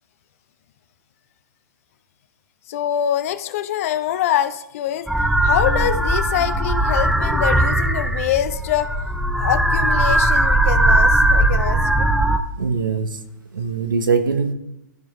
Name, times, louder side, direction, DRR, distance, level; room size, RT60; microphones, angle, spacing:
voice 1, 2.7-5.1 5.4-9.1 9.3-12.1, left 11 dB, 45° left, 12 dB, 0.6 m, -24 dB
sound 1, 5.1-12.4, right 1 dB, ahead, 0.5 m, -18 dB
voice 2, 12.6-13.2 13.5-14.5, right 5 dB, 85° right, 7 dB, 1.1 m, -21 dB
14.5 x 5.0 x 3.2 m, 0.85 s
hypercardioid pair, 140°, 11 cm